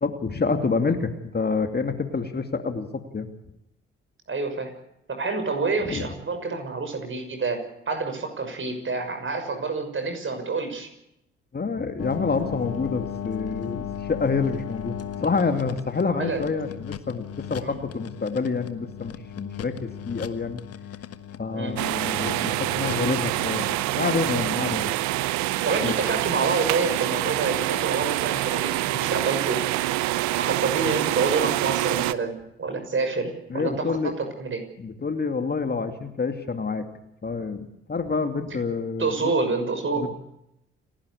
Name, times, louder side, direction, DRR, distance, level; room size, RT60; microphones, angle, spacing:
voice 1, 0.0-2.9 3.1-3.3 5.9-6.1 11.5-20.6 21.4-23.6 24.0-24.8 25.8-25.9 33.5-34.1 34.8-36.8 37.2-39.2 39.9-40.2, left 4 dB, 30° left, 6 dB, 2.5 m, -27 dB
voice 2, 4.3-4.7 5.1-10.9 16.0-16.4 17.6-17.8 21.5-21.7 25.6-29.6 30.3-34.6 39.0-40.1, right 4 dB, 40° right, 6 dB, 6.2 m, -28 dB
sound 1, 12.0-24.9, left 9 dB, 50° left, 1.4 m, -37 dB
sound 2, 21.8-32.1, right 17 dB, 65° right, 0.8 m, -26 dB
29.5 x 11.5 x 8.3 m, 0.81 s
hypercardioid pair, 45°, 30 cm